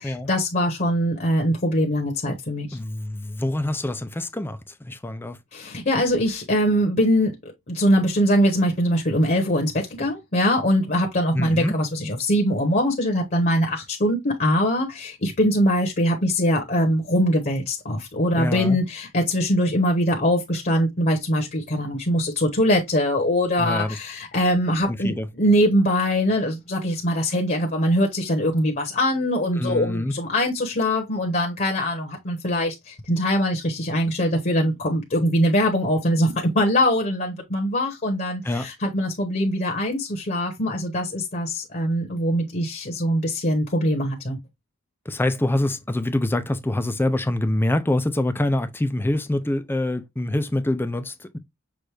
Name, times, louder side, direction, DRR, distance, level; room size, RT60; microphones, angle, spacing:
voice 1, 0.0-2.8 5.5-7.3 7.7-44.4, equal, 40° left, 1.0 m, -22 dB
voice 2, 2.7-5.4 11.3-11.8 18.4-18.8 23.6-23.9 24.9-25.3 29.6-30.1 38.4-38.7 45.1-51.4, left 1 dB, 10° left, 0.5 m, -25 dB
6.2 x 2.5 x 3.3 m
head